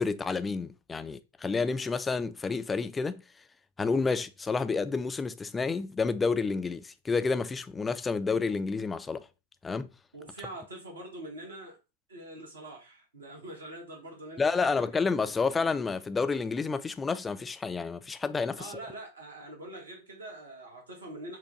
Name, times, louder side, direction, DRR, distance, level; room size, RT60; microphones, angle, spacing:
voice 1, 0.0-3.2 3.8-9.3 9.6-9.9 14.4-18.8, left 4 dB, 15° left, 0.3 m, -30 dB
voice 2, 10.1-11.8 12.1-15.0 18.6-21.4, right 1 dB, 70° right, 1.4 m, -44 dB
4.5 x 2.2 x 3.8 m
figure-of-eight pair, 90°, 0 cm